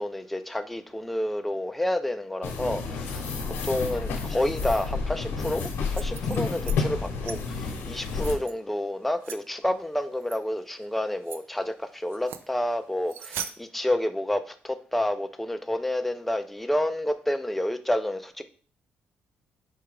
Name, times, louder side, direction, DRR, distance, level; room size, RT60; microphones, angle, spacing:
voice 1, 0.0-18.4, left 1 dB, 5° left, 8 dB, 0.3 m, -29 dB
sound 1, 2.4-8.3, left 4 dB, 85° left, 0.9 m, -30 dB
sound 2, 5.8-6.8 7.0-7.4 7.9-8.5 9.2-9.4 10.2-10.4 10.8-10.9 11.2-11.4 12.1-12.5 13.1-13.5, right 8 dB, 80° right, 0.4 m, -39 dB
4.8 x 2.3 x 4.6 m, 0.41 s
cardioid pair, 160°, 4 cm